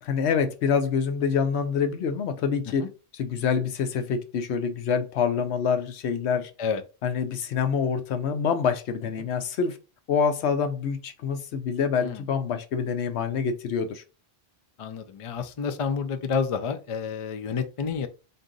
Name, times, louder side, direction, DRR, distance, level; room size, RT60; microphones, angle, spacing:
voice 1, 0.0-2.9 3.1-6.5 7.0-9.8 10.1-14.0, left 6 dB, 80° left, 0.9 m, -26 dB
voice 2, 14.8-18.1, left 6 dB, 45° left, 0.4 m, -29 dB
4.0 x 2.5 x 3.7 m
omnidirectional pair, 1.1 m